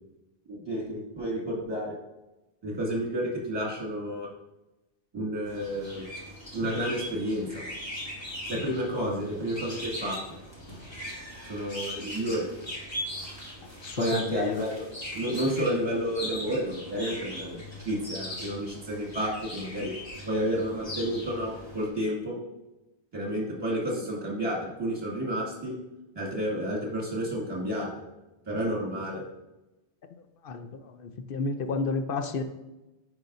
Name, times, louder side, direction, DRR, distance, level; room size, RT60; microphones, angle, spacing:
voice 1, 0.5-1.9 2.6-4.3 5.1-6.1 6.5-7.6 8.5-10.2 11.5-12.5 14.0-14.9 15.1-19.9 20.3-22.4 23.1-25.7 26.1-27.9 28.5-29.2, equal, 20° right, -3 dB, 2.0 m, -30 dB
sound 1, 5.4-21.9, left 1 dB, 25° left, 1.9 m, -40 dB
voice 2, 13.8-14.6 30.4-32.4, left 4 dB, 60° left, 7 dB, 0.8 m, -31 dB
11.0 x 4.9 x 2.6 m, 1.0 s
omnidirectional pair, 1.2 m